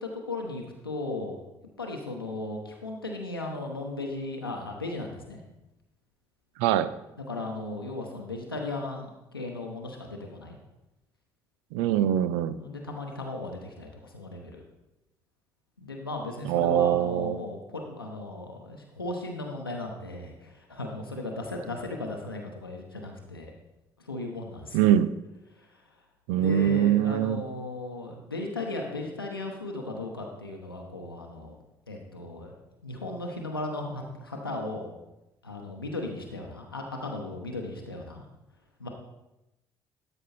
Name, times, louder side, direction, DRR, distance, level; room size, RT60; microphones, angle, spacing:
voice 1, 0.0-1.4 1.8-5.4 7.3-10.6 12.6-14.6 15.8-23.5 24.0-24.8 25.5-25.8 26.3-31.6 31.9-32.5 32.8-34.9 35.4-38.2 38.8-38.9, left 2 dB, 90° left, 1 dB, 0.8 m, -36 dB
voice 2, 6.6-6.9 11.7-12.6 16.4-17.4 24.7-25.1 26.3-27.4, right 11 dB, 65° right, 14 dB, 0.5 m, -23 dB
12.0 x 5.4 x 4.2 m, 0.94 s
figure-of-eight pair, 45°, 12 cm